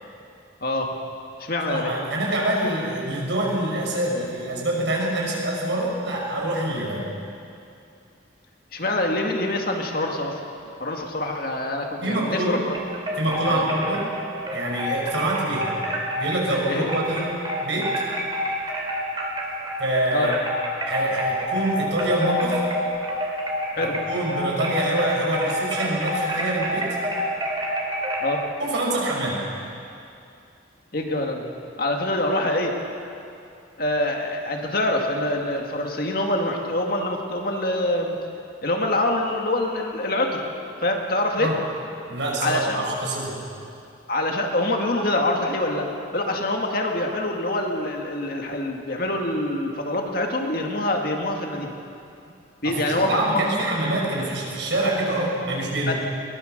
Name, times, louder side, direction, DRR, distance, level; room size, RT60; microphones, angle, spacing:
voice 1, 0.6-0.9 1.4-1.9 8.7-10.4 10.8-12.8 13.5-13.6 16.7-16.9 20.1-20.3 23.7-24.0 28.2-28.4 30.9-31.5 31.8-32.8 33.8-38.2 38.6-40.5 40.8-41.5 42.4-43.0 44.1-45.9 46.1-51.7 52.6-53.4 55.9-56.0, left 1 dB, 50° left, 1 dB, 2.1 m, -25 dB
voice 2, 1.6-7.1 12.0-12.6 13.2-14.1 14.5-15.7 16.1-17.3 17.6-18.0 19.8-20.4 20.8-22.6 23.8-27.0 28.6-29.4 41.4-41.6 42.1-43.4 52.6-55.9, right 1 dB, 70° right, -2 dB, 5.9 m, -25 dB
sound 1, 12.7-19.9 20.2-28.3, equal, 25° right, 2.6 m, -28 dB
21.5 x 20.0 x 6.7 m, 2.6 s
head